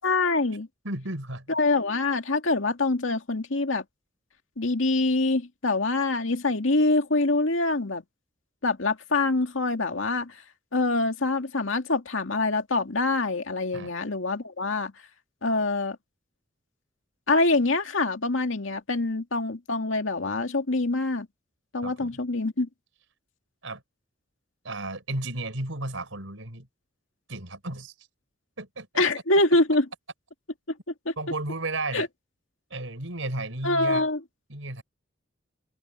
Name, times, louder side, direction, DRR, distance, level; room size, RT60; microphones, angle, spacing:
voice 1, 0.0-0.7 1.5-3.8 4.6-8.0 8.6-10.4 10.7-14.9 15.4-16.0 17.3-21.3 21.7-22.7 29.0-29.9 31.1-31.2 31.9-32.1 33.6-34.2, left 2 dB, 80° left, 2.1 m, -25 dB
voice 2, 0.8-1.5 13.7-13.9 21.8-22.1 23.6-23.8 24.6-26.7 27.3-27.9 28.6-29.0 31.2-32.1 32.7-34.1 34.5-34.8, right 2 dB, 80° right, 4.5 m, -33 dB
open air
head